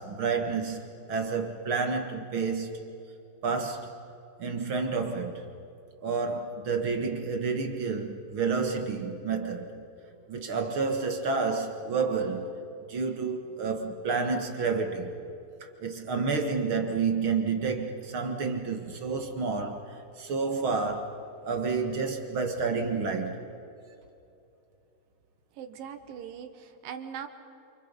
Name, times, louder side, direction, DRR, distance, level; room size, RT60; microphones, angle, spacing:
voice 1, 0.0-3.0 3.4-4.0 4.4-5.5 6.0-9.8 10.3-12.6 12.9-15.2 15.6-21.2 21.4-23.4, right 4 dB, 50° right, 1.7 m, -30 dB
voice 2, 25.6-27.3, right 8 dB, 70° right, 2.9 m, -40 dB
28.5 x 28.5 x 5.4 m
omnidirectional pair, 4.5 m